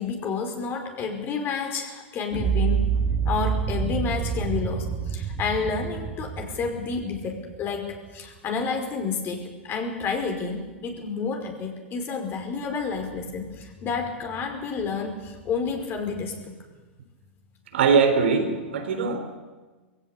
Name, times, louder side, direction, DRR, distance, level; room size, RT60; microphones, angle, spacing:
voice 1, 0.0-2.9 3.3-16.5, left 5 dB, 35° left, 3 dB, 5.2 m, -30 dB
sound 1, 2.3-8.4, right 7 dB, 35° right, 2.4 m, -28 dB
voice 2, 17.7-19.4, right 5 dB, 70° right, 5 dB, 3.8 m, -21 dB
21.5 x 16.5 x 8.6 m, 1.3 s
hypercardioid pair, 105°, 6 cm